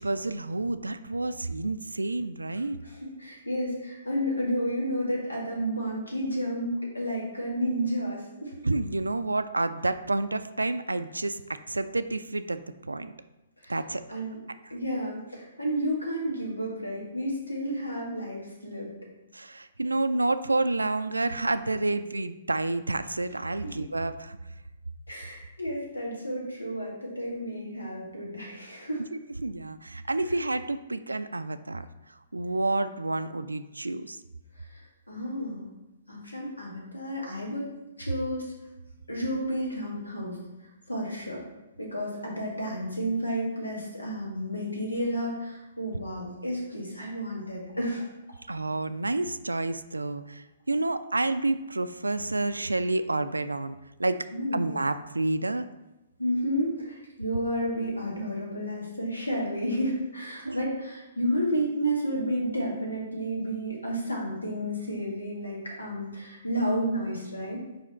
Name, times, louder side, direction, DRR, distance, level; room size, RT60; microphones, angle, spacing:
voice 1, 0.0-2.8 8.6-13.1 13.7-14.0 14.6-14.7 19.3-24.4 29.4-31.9 32.3-34.2 48.5-54.3 54.5-55.7 60.4-60.6, right 2 dB, 80° right, 11 dB, 0.3 m, -29 dB
voice 2, 2.8-8.6 13.6-13.7 14.1-14.4 14.7-18.9 23.6-23.7 25.1-29.1 34.6-35.7 36.1-37.7 38.0-38.5 39.1-40.4 40.9-41.4 41.8-48.0 54.3-54.6 56.2-67.6, equal, 80° left, -3 dB, 2.1 m, -31 dB
5.1 x 4.9 x 4.3 m, 0.99 s
figure-of-eight pair, 120°, 0 cm